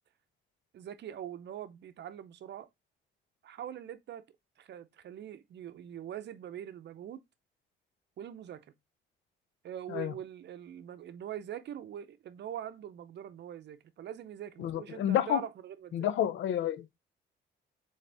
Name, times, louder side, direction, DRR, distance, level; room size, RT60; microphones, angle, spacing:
voice 1, 0.7-2.7 3.4-4.2 4.6-7.2 8.2-8.7 9.6-16.1, right 10 dB, 60° right, 0.6 m, -43 dB
voice 2, 14.6-15.4 15.9-17.0, left 11 dB, 75° left, 0.5 m, -30 dB
4.0 x 3.8 x 3.4 m
cardioid pair, 90°, 20 cm